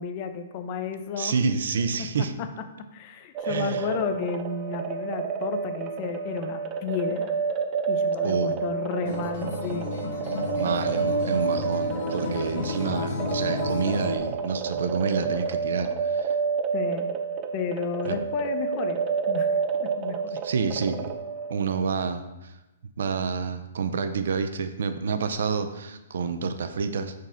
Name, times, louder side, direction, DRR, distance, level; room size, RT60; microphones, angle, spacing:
voice 1, 0.0-1.3 2.0-2.3 2.8-7.4 7.9-9.9 16.7-17.1 17.5-19.0 19.3-20.4, left 6 dB, 35° left, 8 dB, 0.5 m, -32 dB
voice 2, 1.2-2.3 3.4-4.0 8.2-8.5 10.6-16.4 18.0-18.2 20.4-21.1 21.5-22.5 23.0-27.1, right 5 dB, 70° right, 9 dB, 0.5 m, -28 dB
sound 1, 3.4-21.8, right 6 dB, 25° right, 0.4 m, -29 dB
Acoustic guitar, 9.0-14.2, left 4 dB, 50° left, 1.1 m, -32 dB
5.2 x 3.9 x 5.5 m, 1.0 s
hypercardioid pair, 160°, 0 cm